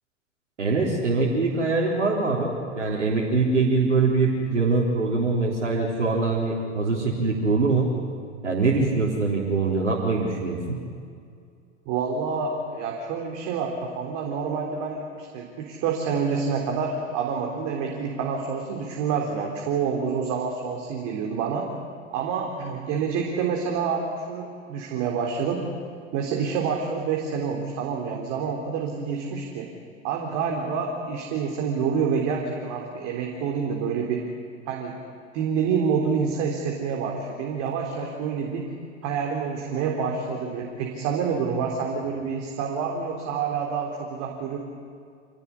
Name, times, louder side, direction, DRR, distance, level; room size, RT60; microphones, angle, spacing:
voice 1, 0.6-7.9 8.4-10.8, right 3 dB, 85° right, -4 dB, 3.9 m, -23 dB
voice 2, 11.9-21.7 22.1-25.6 26.1-29.6 30.0-34.2 34.7-35.0 35.3-38.7 39.0-44.6, right 6 dB, 50° right, 1 dB, 3.8 m, -27 dB
27.0 x 18.5 x 9.9 m, 2.3 s
hypercardioid pair, 95°, 36 cm